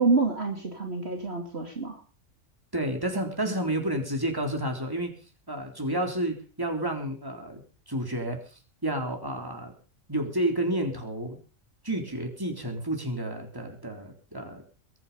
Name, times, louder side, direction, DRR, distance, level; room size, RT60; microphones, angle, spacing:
voice 1, 0.0-2.0, right 4 dB, 50° right, 3 dB, 2.7 m, -27 dB
voice 2, 2.7-7.6 7.9-9.7 10.1-11.4 11.8-14.6, right 1 dB, 15° right, 3 dB, 3.7 m, -30 dB
22.0 x 9.6 x 5.5 m, 0.38 s
omnidirectional pair, 1.4 m